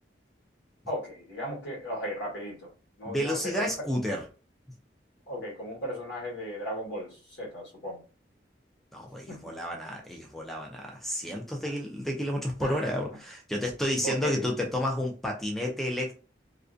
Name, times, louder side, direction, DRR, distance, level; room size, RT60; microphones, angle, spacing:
voice 1, 0.9-2.7 3.0-3.9 5.3-8.0 9.3-9.5 12.6-12.9 14.0-14.4, equal, 80° left, -4 dB, 1.2 m, -36 dB
voice 2, 3.1-4.2 8.9-16.2, left 1 dB, ahead, 0 dB, 0.3 m, -31 dB
2.5 x 2.1 x 2.4 m, 0.36 s
head